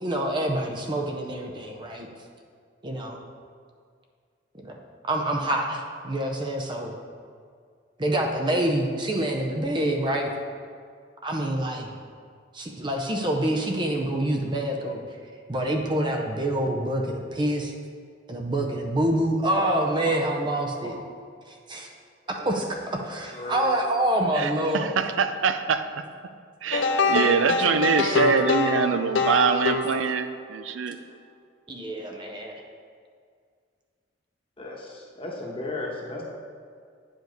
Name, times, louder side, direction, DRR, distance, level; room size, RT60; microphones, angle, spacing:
voice 1, 0.0-2.1 2.8-3.2 4.6-4.8 5.1-6.9 8.0-10.3 11.2-11.9 12.5-15.0 15.5-17.7 18.3-21.0 21.5-21.9 22.4-22.7 23.1-24.9 28.0-28.2 31.7-32.6, right 1 dB, 25° right, 2 dB, 0.6 m, -26 dB
voice 2, 23.3-23.8 34.6-36.2, left 2 dB, 30° left, -2 dB, 1.1 m, -35 dB
voice 3, 24.4-26.0 26.6-31.0, right 6 dB, 85° right, 10 dB, 0.4 m, -24 dB
sound 1, 26.7-30.5, left 3 dB, 65° left, 0.4 m, -24 dB
9.0 x 5.1 x 3.9 m, 2.1 s
head